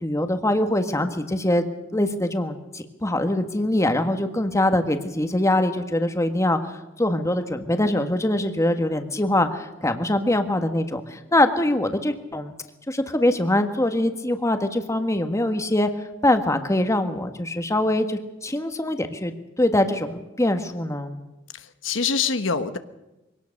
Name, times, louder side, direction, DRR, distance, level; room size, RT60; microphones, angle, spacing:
voice 1, 0.0-1.7 1.9-6.6 7.0-12.5 12.9-15.9 16.2-21.2, left 1 dB, 15° left, 7 dB, 1.5 m, -23 dB
voice 2, 21.6-22.8, left 5 dB, 80° left, 10 dB, 1.3 m, -25 dB
24.0 x 18.0 x 6.6 m, 0.99 s
head